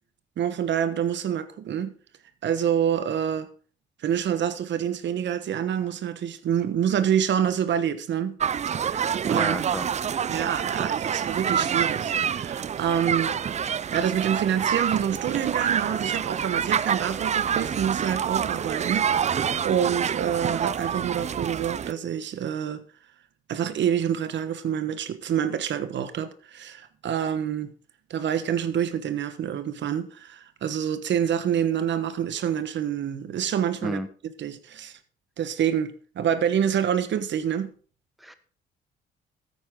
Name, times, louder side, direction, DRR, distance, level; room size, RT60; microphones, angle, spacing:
voice 1, 0.4-1.9 2.4-3.5 4.0-8.3 8.9-9.6 10.3-13.3 13.9-22.8 23.5-27.7 28.1-34.0 34.4-34.9 35.4-37.7, right 9 dB, 65° right, 1.3 m, -27 dB
sound 1, 8.4-21.9, right 8 dB, 35° right, 0.4 m, -27 dB
voice 2, 9.3-9.9 33.8-34.1 38.2-38.3, equal, ahead, 1.2 m, -31 dB
13.5 x 9.5 x 3.8 m
cardioid pair, 90°, 20 cm